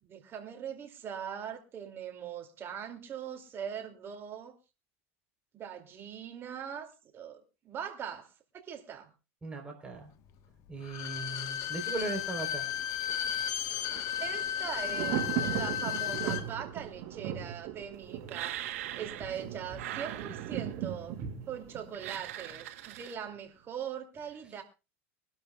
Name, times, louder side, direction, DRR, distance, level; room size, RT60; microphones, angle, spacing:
voice 1, 0.0-4.6 5.5-8.3 8.5-9.1 14.2-21.2 21.5-24.6, right 8 dB, 30° right, 2.5 m, -41 dB
voice 2, 9.4-10.1 10.7-12.7 19.3-19.4, right 3 dB, 15° right, 3.8 m, -38 dB
Bowed string instrument, 10.8-16.5 16.8-16.9, left 10 dB, 50° left, 1.2 m, -34 dB
Thunder, 12.0-22.9 23.2-23.3, right 10 dB, 50° right, 4.3 m, -39 dB
sound 1, 18.3-19.4 19.7-20.8 21.9-23.1, right 13 dB, 80° right, 1.2 m, -41 dB
23.5 x 12.0 x 2.4 m
supercardioid pair, 125°, 8 cm